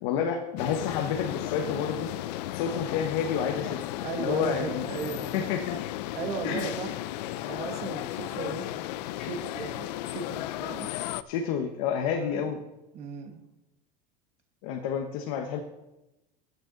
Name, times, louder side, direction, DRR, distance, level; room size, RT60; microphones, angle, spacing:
voice 1, 0.0-2.1 2.5-3.8 4.2-5.8 6.4-6.7 11.3-12.6 14.6-15.6, left 7 dB, 60° left, 4 dB, 1.2 m, -29 dB
sound 1, 0.6-11.2, left 15 dB, 80° left, 0.5 m, -35 dB
voice 2, 4.0-5.5 6.1-7.0 7.5-10.9 12.1-12.5 12.9-13.4, right 6 dB, 30° right, 5 dB, 1.3 m, -37 dB
14.0 x 9.3 x 3.9 m, 0.97 s
supercardioid pair, 175°, 21 cm